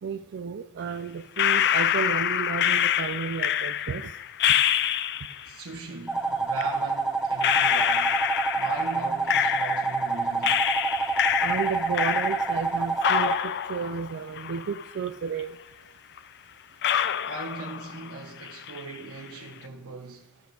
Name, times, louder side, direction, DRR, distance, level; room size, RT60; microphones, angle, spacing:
voice 1, 0.0-4.2 11.4-15.6, right 6 dB, 50° right, 0.4 m, -32 dB
sound 1, 1.4-5.5 6.6-6.7 7.4-10.1 10.4-12.7 13.0-15.1 15.4-15.5 16.2-16.3 16.8-18.1 18.4-19.0, left 10 dB, 50° left, 0.4 m, -26 dB
voice 2, 5.4-8.3 8.6-10.7 17.3-20.4, right 3 dB, 80° right, 1.1 m, -39 dB
sound 2, 6.1-13.4, right 4 dB, 5° right, 0.9 m, -27 dB
14.0 x 6.2 x 3.4 m
head